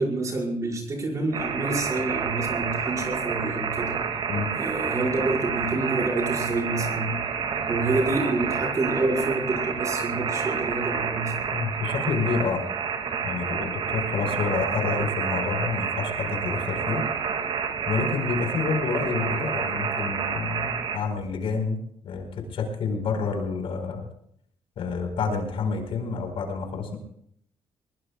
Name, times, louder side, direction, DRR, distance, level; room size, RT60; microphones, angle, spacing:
voice 1, 0.0-4.0 4.6-7.2 7.7-11.3, right 2 dB, 30° right, -1 dB, 5.5 m, -28 dB
sound 1, 1.3-21.0, right 6 dB, 55° right, 2.2 m, -29 dB
voice 2, 11.5-12.6 13.2-17.1 17.9-24.1 24.8-27.0, left 5 dB, 60° left, 4 dB, 4.6 m, -28 dB
22.0 x 21.5 x 2.4 m, 0.67 s
cardioid pair, 165°, 11 cm